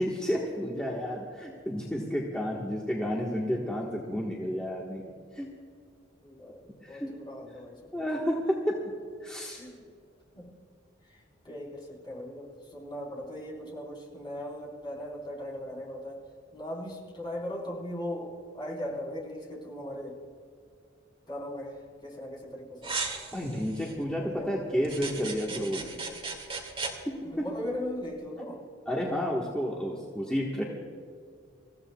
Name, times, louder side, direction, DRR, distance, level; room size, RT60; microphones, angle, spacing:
voice 1, 0.0-5.0 5.3-5.5 6.8-7.1 7.9-8.8 9.2-9.6 23.3-26.0 28.9-30.6, equal, 5° left, -4 dB, 1.5 m, -31 dB
voice 2, 6.2-7.8 9.6-9.8 10.3-10.5 11.1-16.2 16.5-20.2 21.3-22.9 24.2-24.8 27.2-28.6, left 1 dB, 25° left, -3 dB, 4.2 m, -39 dB
sound 1, 22.8-23.9 24.8-26.9, right 4 dB, 30° right, 2.1 m, -36 dB
28.0 x 15.5 x 2.4 m, 2.2 s
head